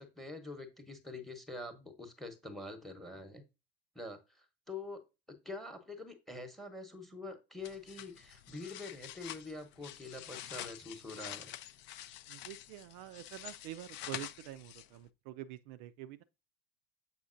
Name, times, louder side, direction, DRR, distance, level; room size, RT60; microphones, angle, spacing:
voice 1, 0.0-3.4 3.9-5.0 5.3-11.5, left 2 dB, ahead, 1.0 m, -45 dB
sound 1, 7.6-15.1, left 12 dB, 35° left, 0.4 m, -47 dB
voice 2, 12.3-16.2, right 13 dB, 45° right, 0.4 m, -47 dB
7.2 x 5.3 x 2.5 m
hypercardioid pair, 85°, 34 cm